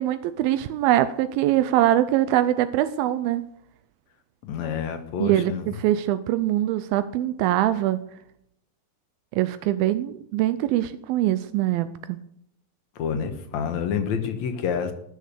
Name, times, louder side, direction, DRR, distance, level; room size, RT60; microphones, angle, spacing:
voice 1, 0.0-3.5 5.2-8.0 9.3-12.2, right 13 dB, 85° right, 12 dB, 2.4 m, -23 dB
voice 2, 4.4-5.7 13.0-14.9, left 7 dB, 60° left, 7 dB, 2.2 m, -28 dB
19.5 x 6.6 x 6.7 m, 0.74 s
omnidirectional pair, 4.2 m